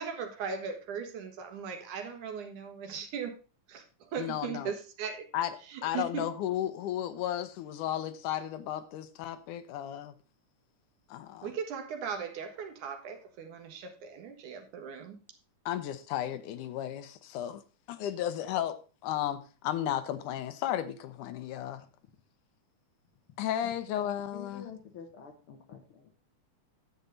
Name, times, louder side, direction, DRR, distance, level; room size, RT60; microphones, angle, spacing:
voice 1, 0.0-3.4 3.7-5.3 5.7-6.2 11.4-15.2, right 6 dB, 80° right, 2.9 m, -38 dB
voice 2, 4.2-4.7 5.3-5.6 5.8-10.1 11.1-11.5 15.7-17.6 17.9-18.8 19.0-21.9 23.4-24.7, left 11 dB, 85° left, 2.3 m, -34 dB
voice 3, 24.3-26.1, left 7 dB, 60° left, 1.5 m, -47 dB
9.9 x 8.2 x 3.9 m
omnidirectional pair, 3.5 m